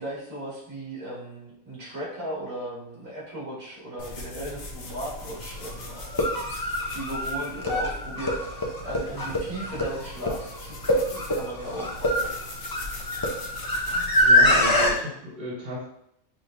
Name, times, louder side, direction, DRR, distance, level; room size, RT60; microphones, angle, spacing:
voice 1, 0.0-6.5 6.9-12.3, right 1 dB, 75° right, -8 dB, 2.5 m, -37 dB
sound 1, 4.0-14.7, left 2 dB, 50° left, 0.8 m, -41 dB
sound 2, 4.9-5.0 6.0-14.9, left 1 dB, 30° left, 0.4 m, -24 dB
voice 2, 14.2-15.8, equal, 35° right, -7 dB, 1.5 m, -33 dB
5.9 x 3.3 x 2.6 m, 0.73 s
omnidirectional pair, 1.4 m